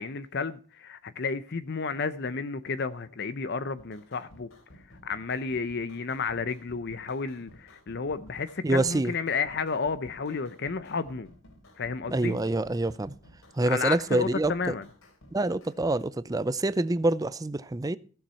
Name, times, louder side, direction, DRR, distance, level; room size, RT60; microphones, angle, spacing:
voice 1, 0.0-4.5 5.0-11.3 11.8-12.4 13.6-14.8, left 5 dB, 55° left, 0.6 m, -32 dB
sound 1, 3.8-16.0, left 1 dB, 80° left, 3.2 m, -54 dB
voice 2, 8.6-9.1 12.1-13.1 13.5-14.7 15.3-18.0, right 2 dB, 15° right, 0.4 m, -26 dB
15.0 x 7.3 x 5.6 m
head